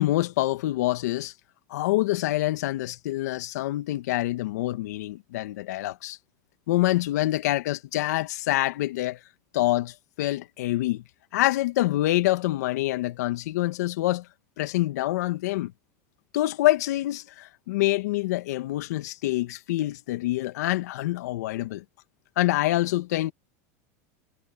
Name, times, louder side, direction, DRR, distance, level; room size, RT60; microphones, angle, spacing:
voice 1, 0.0-1.3 1.7-6.2 6.7-9.2 9.5-11.0 11.3-14.3 14.6-15.7 16.3-21.8 22.4-23.3, left 16 dB, 80° left, 2.1 m, -26 dB
supercardioid pair, 110°, 9 cm